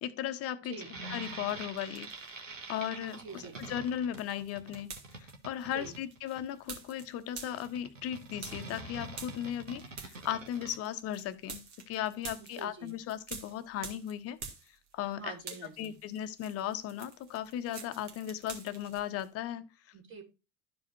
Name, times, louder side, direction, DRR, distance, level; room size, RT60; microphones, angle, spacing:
voice 1, 0.0-0.8 1.1-2.1 2.7-14.4 14.9-15.3 15.8-19.7, left 11 dB, 40° left, 0.8 m, -37 dB
sound 1, 0.7-10.8, right 3 dB, 85° right, 1.4 m, -45 dB
sound 2, 1.2-2.4 2.7-15.1 15.4-19.3, right 5 dB, 65° right, 1.9 m, -48 dB
voice 2, 3.1-3.5 5.6-6.0 12.4-12.9 15.0-15.9 19.9-20.2, right 4 dB, 30° right, 2.5 m, -46 dB
12.5 x 4.9 x 2.7 m
figure-of-eight pair, 70°, 37 cm